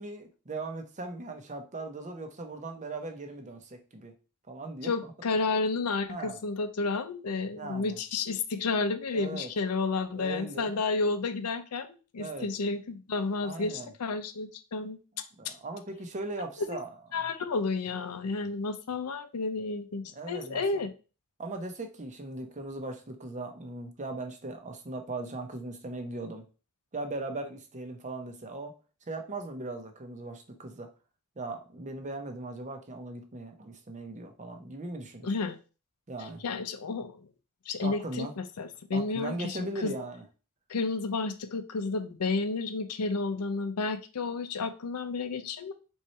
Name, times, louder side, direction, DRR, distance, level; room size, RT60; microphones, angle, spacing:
voice 1, 0.0-4.1 4.5-5.1 6.1-6.4 7.5-8.0 9.1-9.5 10.2-10.8 12.2-12.5 13.4-13.9 15.4-16.9 20.1-20.8 21.4-26.4 26.9-28.7 29.1-30.9 31.4-35.3 36.1-36.4 37.8-38.3 38.9-40.2, right 2 dB, 35° right, 5 dB, 0.8 m, -39 dB
voice 2, 4.8-15.5 16.7-16.8 17.1-20.9 35.2-35.6 36.2-37.3 37.7-39.9 40.7-45.7, left 3 dB, 90° left, 10 dB, 0.6 m, -31 dB
3.7 x 3.1 x 4.2 m, 0.34 s
head